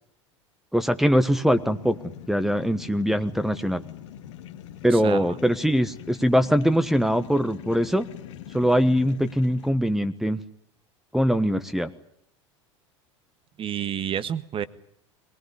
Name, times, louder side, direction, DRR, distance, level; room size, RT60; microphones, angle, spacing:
voice 1, 0.7-2.0 2.3-3.8 4.8-8.1 8.5-10.4 11.1-11.9, equal, ahead, 8 dB, 1.3 m, -22 dB
sound 1, 1.4-9.7, left 10 dB, 70° left, 1.9 m, -42 dB
voice 2, 13.6-14.6, right 9 dB, 35° right, 14 dB, 1.5 m, -29 dB
22.0 x 19.5 x 9.9 m, 0.72 s
hypercardioid pair, 85°, 16 cm